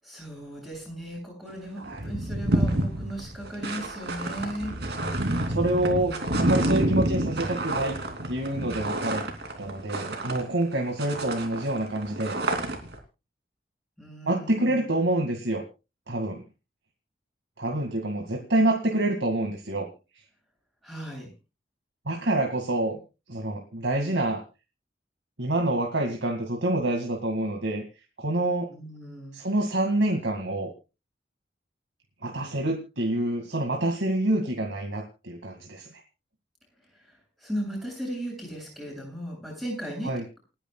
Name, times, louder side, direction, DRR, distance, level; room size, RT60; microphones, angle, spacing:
voice 1, 0.0-4.7 5.5-6.3 14.0-14.8 20.8-21.3 28.7-29.4 37.4-40.1, equal, ahead, -1 dB, 7.4 m, -36 dB
sound 1, 1.5-1.6 1.8-10.7 11.0-13.0, right 1 dB, 65° right, 3.0 m, -29 dB
voice 2, 5.5-8.0 8.3-9.3 9.6-12.3 14.3-15.6 16.1-16.4 17.6-19.9 22.1-23.0 23.3-24.4 25.4-27.8 28.2-28.7 29.3-30.7 32.2-35.9 40.0-40.2, right 1 dB, 85° right, 3 dB, 2.2 m, -27 dB
29.0 x 10.0 x 2.4 m, 0.30 s
head